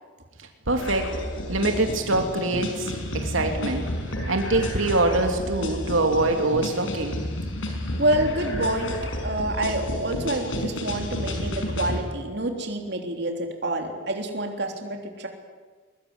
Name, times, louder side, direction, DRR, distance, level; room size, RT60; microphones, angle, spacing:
voice 1, 0.7-1.1 1.5-3.8 4.3-7.2, right 2 dB, 85° right, 3 dB, 2.9 m, -24 dB
sound 1, 0.8-12.0, left 1 dB, 75° left, 5.6 m, -31 dB
voice 2, 8.0-8.9 9.2-15.3, right 1 dB, 55° right, 3 dB, 3.4 m, -27 dB
22.5 x 22.0 x 9.7 m, 1.4 s
head